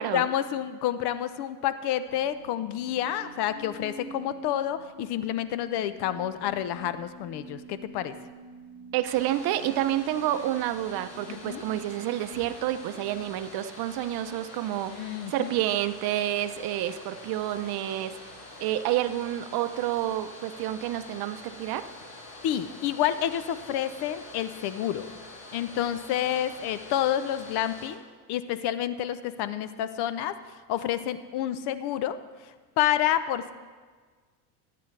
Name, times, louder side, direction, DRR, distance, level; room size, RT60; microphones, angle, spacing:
voice 1, 0.0-8.1 11.3-11.6 14.9-15.5 22.4-25.1 25.5-28.0 28.3-30.4 30.7-32.2 32.8-33.5, left 11 dB, 55° left, 13 dB, 0.7 m, -29 dB
sound 1, 2.1-14.2, right 2 dB, 15° right, 2.4 m, -48 dB
voice 2, 8.9-18.1 18.6-21.9, right 13 dB, 50° right, 11 dB, 0.7 m, -29 dB
Domestic sounds home sounds, 9.1-27.9, left 2 dB, 85° left, 3.3 m, -46 dB
15.5 x 8.6 x 3.3 m, 1.5 s
supercardioid pair, 105°, 48 cm